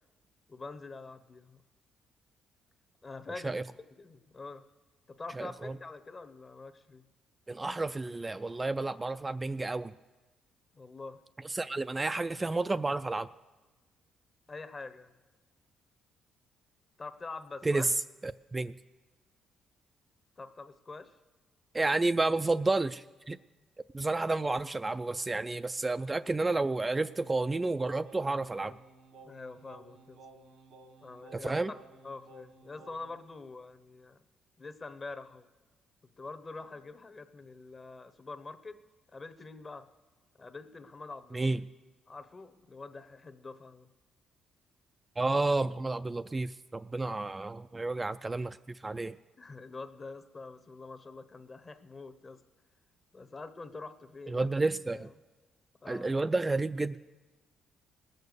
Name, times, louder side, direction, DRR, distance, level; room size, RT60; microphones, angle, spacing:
voice 1, 0.5-1.6 3.0-4.6 5.1-7.0 10.7-11.2 14.5-15.1 17.0-17.9 20.4-21.2 29.2-30.2 31.0-31.6 32.0-34.2 34.6-35.5 36.2-38.8 39.1-39.9 40.4-41.5 42.1-43.9 47.0-47.1 49.4-52.4 53.1-54.5 54.9-55.1 55.8-56.2, left 3 dB, 30° left, 10 dB, 0.9 m, -45 dB
voice 2, 5.4-5.7 7.5-9.9 11.5-13.3 17.6-17.9 18.2-18.8 21.7-23.4 23.9-28.8 31.3-31.7 41.3-41.6 45.2-49.2 54.3-55.1 55.9-57.0, right 3 dB, 20° right, 11 dB, 0.3 m, -31 dB
Singing, 26.4-33.2, right 2 dB, 90° right, 1.6 m, -56 dB
19.0 x 6.6 x 6.7 m, 1.2 s
cardioid pair, 85°, 0 cm